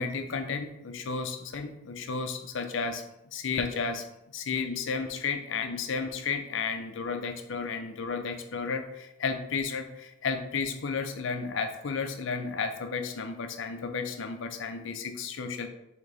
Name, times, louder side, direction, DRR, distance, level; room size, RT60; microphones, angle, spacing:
voice 1, 0.0-3.0 3.3-4.0 4.3-15.7, left 5 dB, 65° left, 7 dB, 0.5 m, -33 dB
3.9 x 2.9 x 4.7 m, 0.88 s
head